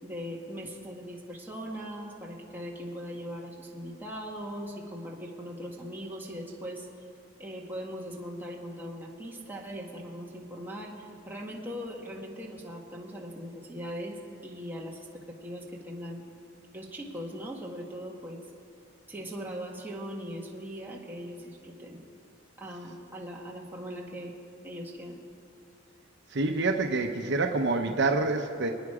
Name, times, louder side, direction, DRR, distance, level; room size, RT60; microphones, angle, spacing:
voice 1, 0.0-6.9 7.4-16.2 16.7-18.4 19.1-22.0 22.6-24.3 24.6-25.2, equal, 10° right, -3 dB, 1.9 m, -40 dB
voice 2, 26.3-28.7, right 3 dB, 60° right, 3 dB, 0.9 m, -27 dB
27.0 x 9.5 x 5.0 m, 2.6 s
head